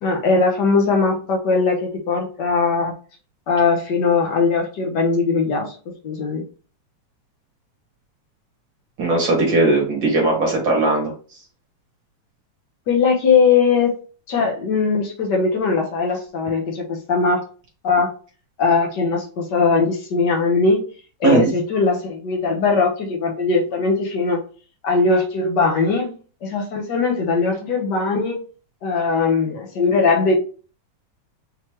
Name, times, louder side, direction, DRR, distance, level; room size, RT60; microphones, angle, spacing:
voice 1, 0.0-2.9 3.5-5.8 6.0-6.4 12.9-13.9 14.3-17.4 17.8-18.1 18.6-20.8 21.2-24.4 24.8-26.1 26.4-28.4 28.8-30.4, left 4 dB, 65° left, 1 dB, 1.0 m, -20 dB
voice 2, 9.0-11.1 21.2-21.6, right 2 dB, 50° right, -1 dB, 1.8 m, -18 dB
5.6 x 3.0 x 3.1 m, 0.37 s
omnidirectional pair, 3.4 m